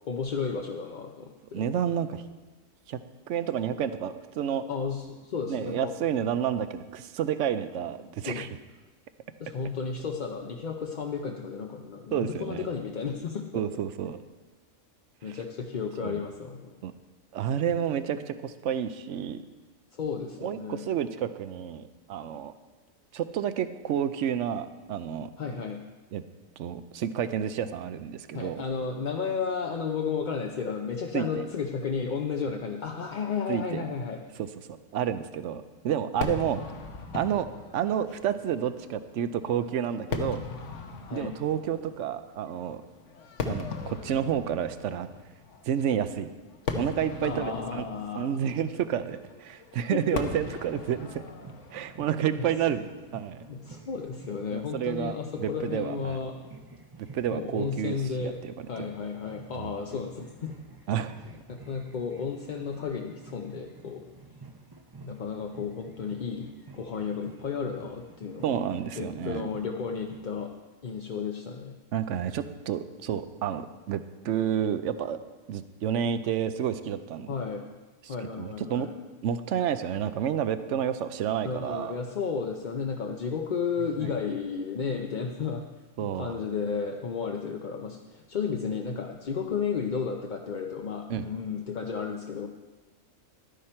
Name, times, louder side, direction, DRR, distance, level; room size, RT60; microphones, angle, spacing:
voice 1, 0.1-1.6 4.7-5.9 8.2-8.5 9.4-13.4 15.2-16.7 20.0-20.8 25.4-25.8 28.3-34.2 36.2-36.4 41.1-41.3 47.2-48.4 49.9-50.0 52.4-52.5 53.5-56.4 57.3-58.4 58.7-60.5 61.5-64.1 65.0-68.6 69.0-70.5 70.8-71.8 77.3-77.7 78.1-78.9 81.4-85.6 86.0-92.5, left 5 dB, 45° left, 2 dB, 0.7 m, -33 dB
voice 2, 1.5-2.2 2.9-3.0 3.3-4.6 5.5-8.5 12.1-12.7 13.5-14.2 15.3-15.4 16.0-16.2 16.8-16.9 17.3-19.4 20.4-22.5 23.1-25.3 26.1-26.2 26.6-28.6 31.1-31.5 33.5-33.9 34.4-36.6 37.1-37.5 37.7-40.4 41.1-42.8 43.4-45.1 45.6-46.3 46.7-47.8 48.1-51.2 51.7-53.5 54.5-56.2 57.1-57.9 58.2-58.5 58.8-58.9 59.6-59.7 60.9-61.1 68.4-69.5 71.9-75.2 75.5-77.3 78.1-78.9 79.2-82.0 84.0-84.1 86.0-86.4 91.1-91.3, right 9 dB, 70° right, 12 dB, 0.9 m, -30 dB
Fireworks, 36.2-53.5, left 4 dB, 65° left, 1.3 m, -39 dB
sound 1, 51.4-70.5, right 3 dB, 25° right, 0.6 m, -50 dB
12.0 x 10.0 x 4.4 m, 1.2 s
omnidirectional pair, 1.4 m